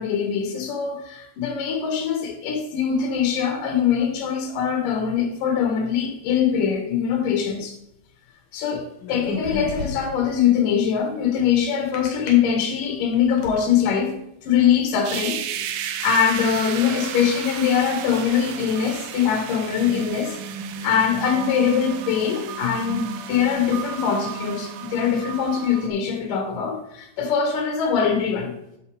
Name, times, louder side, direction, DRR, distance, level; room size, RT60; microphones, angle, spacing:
voice 1, 0.0-7.8 8.5-15.4 16.0-20.4 20.8-28.5, left 7 dB, 70° left, 2.4 m, -22 dB
sound 1, 9.0-10.2 11.9-12.3 12.9-13.6, left 3 dB, 45° left, 2.1 m, -31 dB
sound 2, 15.0-25.9, right 8 dB, 85° right, 2.7 m, -33 dB
8.4 x 6.4 x 4.6 m
omnidirectional pair, 4.6 m